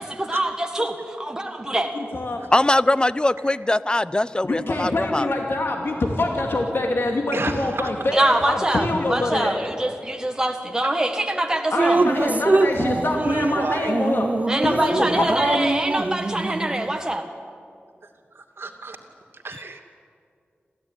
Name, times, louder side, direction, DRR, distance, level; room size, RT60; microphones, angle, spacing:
voice 1, 0.0-1.9 8.1-12.0 14.5-17.2, right 1 dB, 15° right, 4 dB, 1.7 m, -24 dB
voice 2, 1.9-2.4 4.4-9.5 11.7-14.3 14.6-15.7, left 2 dB, 65° left, 1 dB, 2.5 m, -25 dB
voice 3, 2.5-5.3, left 1 dB, 20° left, 16 dB, 0.6 m, -21 dB
voice 4, 7.3-7.9 12.1-14.0 14.8-15.2 18.3-19.0 19.3-19.8, right 3 dB, 70° right, 4 dB, 2.5 m, -33 dB
Drip, 11.8-17.0, right 3 dB, 35° right, 0.5 m, -23 dB
27.0 x 15.5 x 9.8 m, 2.3 s
wide cardioid pair, 75°, 4 cm